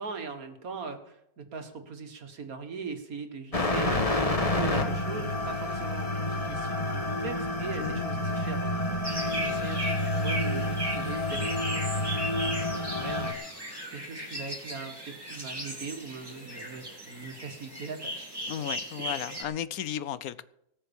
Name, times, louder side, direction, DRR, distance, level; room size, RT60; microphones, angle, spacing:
voice 1, 0.0-4.0 4.5-8.7 9.3-11.8 12.4-13.4 13.9-18.3, right 4 dB, 75° right, 2.1 m, -40 dB
sound 1, 3.5-13.3, left 1 dB, 25° left, 1.4 m, -29 dB
voice 2, 7.7-8.1 18.5-20.4, left 10 dB, 80° left, 1.2 m, -34 dB
sound 2, 9.0-19.4, right 1 dB, 15° right, 2.9 m, -37 dB
18.5 x 7.0 x 7.1 m
omnidirectional pair, 1.5 m